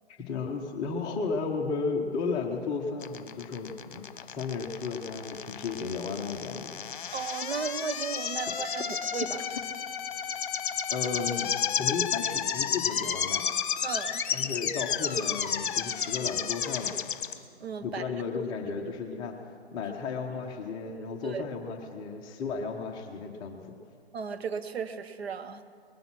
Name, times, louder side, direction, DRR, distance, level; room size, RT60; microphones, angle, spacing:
voice 1, 0.2-6.9 10.9-11.5 11.8-13.4 14.3-16.9 17.8-23.7, left 4 dB, 15° left, 2 dB, 0.7 m, -34 dB
sound 1, 3.0-17.3, left 8 dB, 50° left, 1.0 m, -32 dB
voice 2, 7.1-9.4 13.8-14.2 17.6-18.0 21.2-21.4 24.1-25.6, right 6 dB, 70° right, 9 dB, 1.0 m, -35 dB
20.0 x 9.2 x 6.0 m, 2.2 s
figure-of-eight pair, 135°, 32 cm